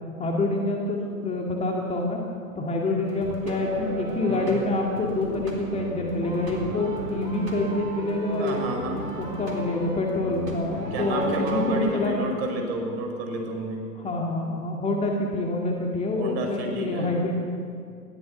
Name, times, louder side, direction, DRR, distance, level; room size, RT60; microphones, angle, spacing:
voice 1, 0.2-2.2 2.6-8.6 9.2-12.1 14.0-17.3, left 2 dB, 15° left, 0 dB, 2.2 m, -27 dB
sound 1, 3.0-11.8, right 2 dB, 85° right, 3.9 m, -34 dB
voice 2, 8.4-9.0 10.9-13.8 16.2-17.1, right 1 dB, 40° right, 3 dB, 5.5 m, -30 dB
20.5 x 15.5 x 8.2 m, 2.3 s
figure-of-eight pair, 115°, 47 cm